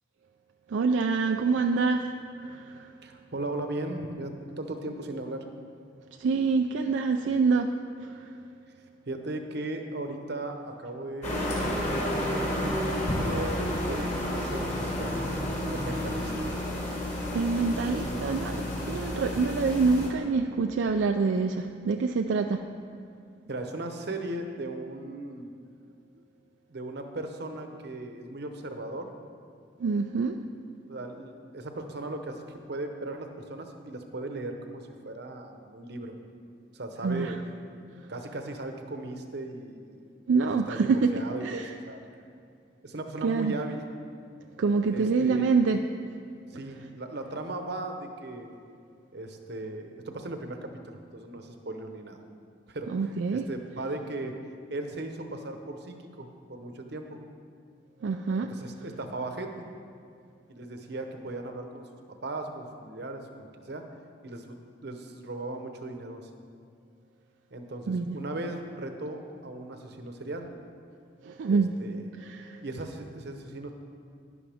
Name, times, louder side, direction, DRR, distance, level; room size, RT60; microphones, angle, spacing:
voice 1, 0.7-2.1 2.4-2.9 6.2-7.7 8.0-8.3 17.3-22.6 29.8-30.4 37.0-37.3 40.3-41.1 41.4-41.7 43.2-43.5 44.6-45.8 52.9-53.5 58.0-58.5 67.9-68.2 71.2-71.7 72.2-72.6, right 4 dB, 85° right, 5 dB, 0.4 m, -26 dB
voice 2, 3.0-5.4 9.1-15.3 15.7-16.5 17.8-18.3 23.5-25.5 26.7-29.1 30.9-32.4 32.7-36.1 36.7-37.4 38.1-40.0 40.5-42.0 42.8-43.8 44.9-45.5 46.5-48.5 49.1-52.2 52.7-54.3 54.7-57.2 58.4-59.7 60.5-61.8 62.2-63.8 64.2-66.2 67.5-70.5 71.5-72.1 72.6-73.7, right 2 dB, 65° right, 5 dB, 0.9 m, -37 dB
sound 1, 11.2-20.1, left 1 dB, 40° left, 2.3 m, -31 dB
11.0 x 11.0 x 3.5 m, 2.3 s
head